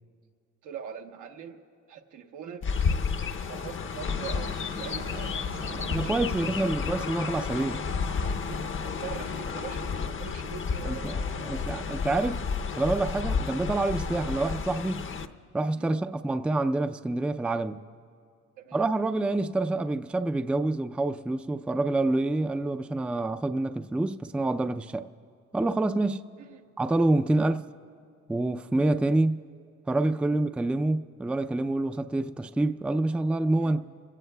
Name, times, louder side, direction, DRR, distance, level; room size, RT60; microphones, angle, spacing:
voice 1, 0.6-1.6 1.9-6.8 8.5-12.2 14.3-14.5 15.7-16.0 18.6-18.9 26.4-26.7 27.4-27.5 29.0-29.2 30.2-30.4 33.6-33.8, right 8 dB, 90° right, 1.1 m, -43 dB
Chirp tweet, 2.6-15.3, left 5 dB, 40° left, 0.7 m, -31 dB
sound 1, 3.7-8.9, right 5 dB, 55° right, 1.1 m, -47 dB
voice 2, 5.9-7.8 10.8-12.4 12.7-15.1 15.5-17.8 18.7-25.1 25.5-26.3 26.8-27.6 28.3-29.4 29.9-33.8, right 2 dB, 5° right, 0.3 m, -27 dB
28.0 x 17.0 x 2.2 m
cardioid pair, 90°, 30 cm